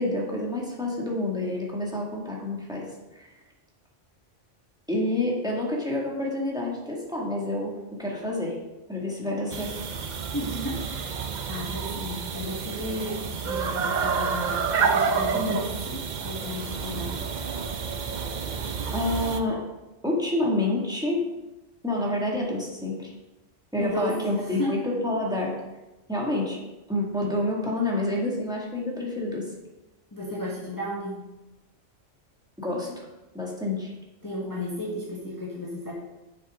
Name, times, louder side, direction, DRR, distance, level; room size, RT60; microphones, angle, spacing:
voice 1, 0.0-3.3 4.9-8.6 8.9-9.7 15.3-15.6 18.9-19.7 20.0-21.4 21.8-23.1 23.7-25.6 26.1-26.6 26.9-29.5 32.6-33.1 33.3-33.9, left 1 dB, 5° right, -2 dB, 1.9 m, -28 dB
sound 1, 9.5-19.4, right 5 dB, 50° right, 0.6 m, -29 dB
voice 2, 10.3-17.2 23.8-24.8 30.1-31.2 34.2-35.9, left 1 dB, 15° left, -5 dB, 1.3 m, -34 dB
9.9 x 7.3 x 3.6 m, 1.0 s
omnidirectional pair, 1.3 m